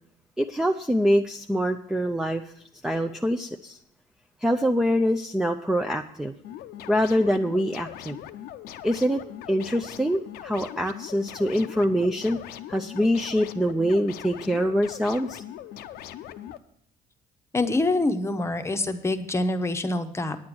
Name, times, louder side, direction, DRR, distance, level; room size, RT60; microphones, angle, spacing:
voice 1, 0.4-2.4 2.8-3.8 4.4-6.3 6.9-8.2 8.8-9.2 9.5-12.4 12.7-15.4, equal, 5° right, 5 dB, 0.4 m, -24 dB
sound 1, 6.4-16.6, left 11 dB, 80° left, 0.6 m, -41 dB
voice 2, 17.5-20.4, left 2 dB, 15° left, 8 dB, 0.8 m, -25 dB
9.6 x 8.6 x 6.1 m, 0.69 s
cardioid pair, 110°, 16 cm